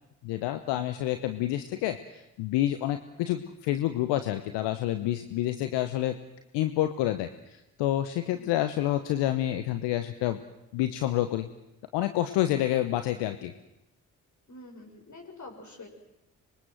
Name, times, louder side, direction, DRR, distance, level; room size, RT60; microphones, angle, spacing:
voice 1, 0.2-6.2 6.5-10.4 10.7-11.5 11.9-13.5, left 13 dB, 75° left, 9 dB, 1.2 m, -28 dB
voice 2, 14.5-15.9, left 2 dB, 40° left, 4 dB, 7.3 m, -46 dB
25.5 x 22.5 x 7.8 m, 0.89 s
hypercardioid pair, 40°, 42 cm